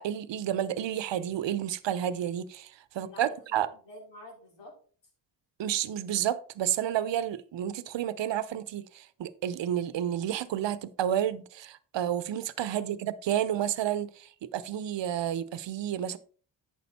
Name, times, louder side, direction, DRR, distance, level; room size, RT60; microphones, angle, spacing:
voice 1, 0.0-3.7 5.6-16.2, right 10 dB, 75° right, 0.8 m, -31 dB
voice 2, 3.0-4.7 12.7-13.1, left 1 dB, 75° left, 5.0 m, -49 dB
9.4 x 6.3 x 4.2 m
cardioid pair, 60°, 44 cm